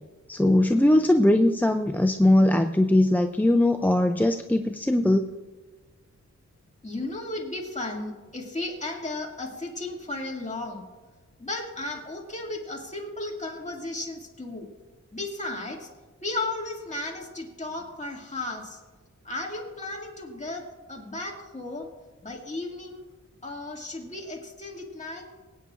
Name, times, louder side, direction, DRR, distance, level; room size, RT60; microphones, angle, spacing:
voice 1, 0.3-5.3, left 1 dB, 5° left, 6 dB, 0.4 m, -20 dB
voice 2, 6.8-10.8 11.4-14.7 15.1-15.9 16.2-18.8 19.2-21.9 22.2-23.0 23.4-25.3, left 2 dB, 25° left, -1 dB, 2.2 m, -34 dB
22.5 x 9.0 x 2.5 m, 1.3 s
wide cardioid pair, 95°, 29 cm